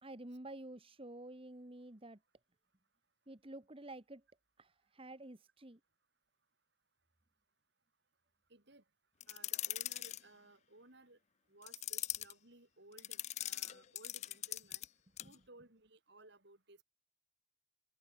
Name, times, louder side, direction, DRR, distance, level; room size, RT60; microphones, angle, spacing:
voice 1, 0.0-2.2 3.3-4.2 4.6-5.8 15.2-15.3, right 1 dB, 30° right, 1.5 m, -50 dB
voice 2, 8.5-8.8 9.3-11.2 11.5-14.8 15.2-16.8, right 2 dB, 60° right, 4.6 m, -60 dB
sound 1, 9.2-10.2 11.6-12.3 13.0-14.9 15.2-15.4, left 14 dB, 35° left, 0.3 m, -41 dB
open air
head